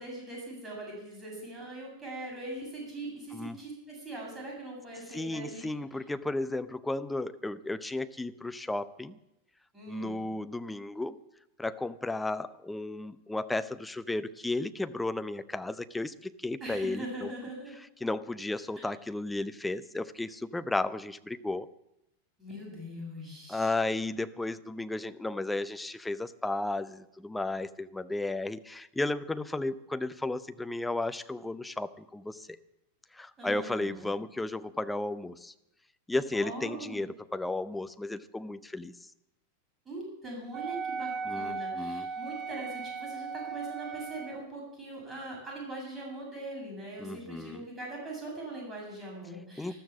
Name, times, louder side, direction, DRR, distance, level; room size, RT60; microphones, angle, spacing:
voice 1, 0.0-5.7 9.7-10.2 16.6-17.7 18.8-18.9 22.4-23.7 33.4-34.1 36.3-37.0 39.8-49.8, right 1 dB, 15° right, -2 dB, 7.6 m, -41 dB
voice 2, 5.1-9.2 9.9-11.2 11.6-17.3 18.0-21.7 23.5-32.5 33.1-35.5 36.1-38.9 41.3-42.1 47.0-47.6 49.6-49.7, left 2 dB, 5° left, 11 dB, 0.7 m, -34 dB
Wind instrument woodwind instrument, 40.5-44.4, right 5 dB, 35° right, 1.0 m, -37 dB
13.5 x 12.5 x 7.3 m, 0.85 s
figure-of-eight pair, 90°, 0 cm